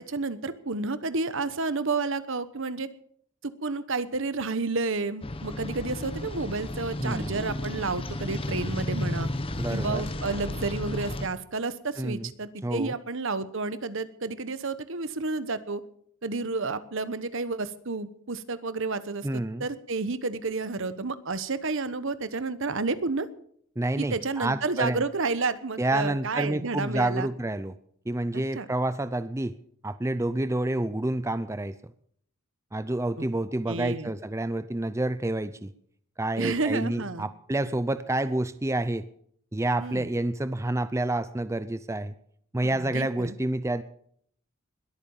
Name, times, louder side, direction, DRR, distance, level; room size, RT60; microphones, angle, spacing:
voice 1, 0.0-2.9 3.4-9.3 9.7-15.8 16.2-23.3 24.0-27.3 28.3-28.6 33.2-33.3 33.7-34.1 36.4-37.3 39.8-40.1 42.6-43.3, right 3 dB, 60° right, 14 dB, 1.1 m, -31 dB
sound 1, 5.2-11.3, left 1 dB, 25° left, 1.0 m, -33 dB
voice 2, 7.0-7.4 9.6-10.1 12.0-12.3 12.6-12.9 19.2-19.7 23.8-25.0 25.8-27.7 28.1-29.6 29.8-31.7 32.7-35.7 36.2-39.1 39.5-42.1 42.5-43.8, right 1 dB, 15° right, 13 dB, 0.5 m, -28 dB
21.0 x 8.8 x 7.1 m, 0.64 s
head